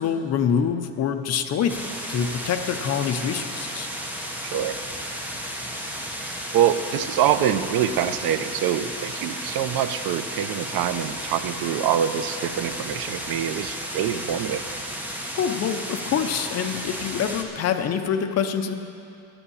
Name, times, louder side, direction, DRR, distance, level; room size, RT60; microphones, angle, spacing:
voice 1, 0.0-1.8 2.1-3.9 15.4-18.7, left 7 dB, 45° left, 7 dB, 0.6 m, -25 dB
sound 1, 1.7-17.4, equal, 5° right, 0.8 m, -33 dB
voice 2, 6.5-14.6, right 10 dB, 90° right, 12 dB, 0.6 m, -25 dB
10.0 x 9.8 x 7.0 m, 2.6 s
cardioid pair, 180°, 35 cm